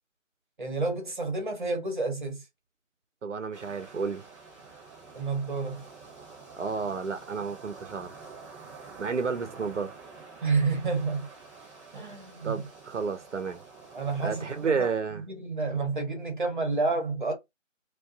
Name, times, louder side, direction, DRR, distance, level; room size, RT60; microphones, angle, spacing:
voice 1, 0.6-2.4 5.1-5.8 10.4-11.3 11.9-12.7 13.9-17.3, right 3 dB, 40° right, 0.9 m, -30 dB
voice 2, 3.2-4.2 6.6-8.2 9.0-9.9 12.4-13.6 14.2-15.2, right 5 dB, 65° right, 0.6 m, -31 dB
sound 1, 3.5-14.7, right 4 dB, 5° left, 0.9 m, -48 dB
2.5 x 2.3 x 2.4 m
figure-of-eight pair, 160°, 39 cm